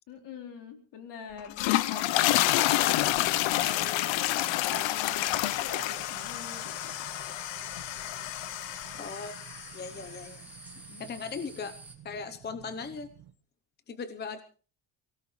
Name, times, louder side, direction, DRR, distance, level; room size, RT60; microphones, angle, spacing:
voice 1, 0.1-1.6 1.9-3.0 3.5-4.1 4.6-7.1 10.9-11.0, left 4 dB, 65° left, 4 dB, 4.4 m, -43 dB
sound 1, 1.4-9.7, left 16 dB, 80° left, 0.8 m, -28 dB
sound 2, 2.8-13.3, right 11 dB, 65° right, 1.6 m, -52 dB
sound 3, 4.2-11.9, right 2 dB, 5° right, 3.1 m, -49 dB
voice 2, 8.9-9.4 9.7-10.4 11.0-11.7 12.0-13.1 13.9-14.4, left 5 dB, 20° left, 10 dB, 0.8 m, -38 dB
24.0 x 17.5 x 3.2 m, 0.39 s
cardioid pair, 170°, 45 cm